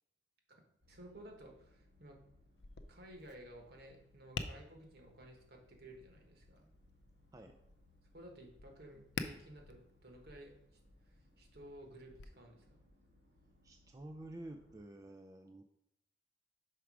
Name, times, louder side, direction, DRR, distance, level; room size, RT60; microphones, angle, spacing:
voice 1, 0.5-2.2 2.9-6.7 8.1-10.6 11.1-12.8, right 1 dB, 60° right, 2 dB, 1.3 m, -55 dB
sound 1, 0.8-14.8, left 1 dB, 75° right, 1.6 m, -67 dB
Tap, 2.6-12.2, left 4 dB, 70° left, 0.5 m, -50 dB
voice 2, 13.6-15.6, right 1 dB, 20° right, 5 dB, 0.3 m, -50 dB
5.8 x 5.0 x 4.7 m, 0.78 s
head